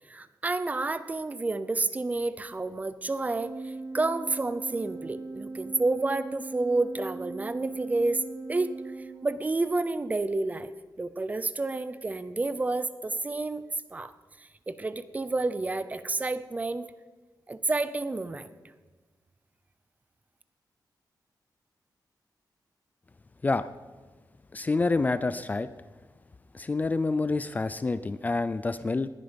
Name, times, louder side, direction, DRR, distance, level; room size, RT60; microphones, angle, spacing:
voice 1, 0.1-8.7 9.2-10.7 11.0-16.9 17.5-18.5, right 2 dB, 20° right, 13 dB, 0.6 m, -30 dB
Organ, 3.2-9.8, right 3 dB, 65° right, 3.6 m, -40 dB
voice 2, 24.5-25.7 26.5-29.1, left 3 dB, 20° left, 13 dB, 0.4 m, -27 dB
20.0 x 11.5 x 5.2 m, 1.3 s
wide cardioid pair, 175°, 7 cm